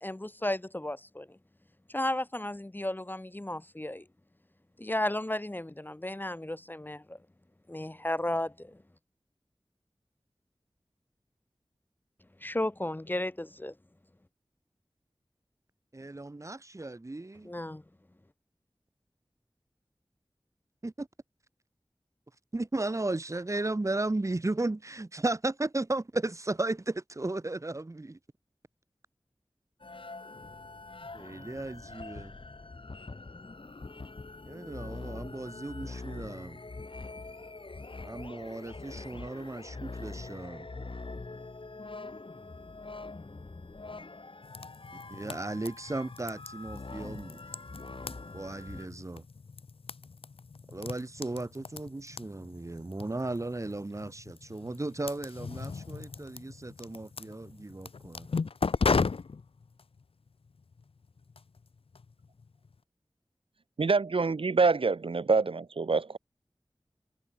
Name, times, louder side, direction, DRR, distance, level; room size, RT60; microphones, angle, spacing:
voice 1, 0.0-1.4 1.9-4.1 4.8-7.2 7.7-8.8 12.4-13.7 17.4-17.8, left 1 dB, 20° left, 0.6 m, -34 dB
voice 2, 15.9-17.5 20.8-21.1 22.5-28.2 31.1-32.3 34.5-36.6 38.0-40.7 45.1-47.4 48.3-49.2 50.7-58.3, right 2 dB, 35° right, 0.8 m, -35 dB
sound 1, 29.8-48.9, left 3 dB, 70° left, 3.2 m, -44 dB
sound 2, 44.4-62.7, left 4 dB, 90° left, 0.6 m, -37 dB
voice 3, 63.8-66.2, right 4 dB, 75° right, 0.8 m, -26 dB
wide cardioid pair, 45°, 9 cm